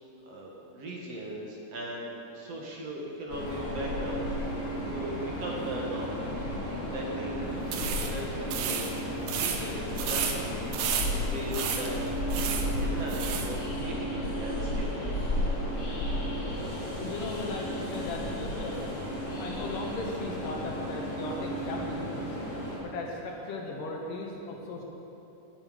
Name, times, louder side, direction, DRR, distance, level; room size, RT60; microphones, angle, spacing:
voice 1, 0.2-4.4 4.9-6.2 6.7-8.9 9.2-10.6 11.1-15.3, right 1 dB, 55° right, -2 dB, 2.7 m, -39 dB
Train, 3.3-22.8, equal, 40° left, 3.2 m, -33 dB
sound 1, 7.6-13.5, right 7 dB, 85° right, 2.6 m, -33 dB
voice 2, 16.9-18.8 19.4-22.4 22.8-24.8, left 2 dB, 85° left, 0 dB, 3.3 m, -37 dB
18.5 x 8.8 x 5.2 m, 2.9 s
omnidirectional pair, 3.7 m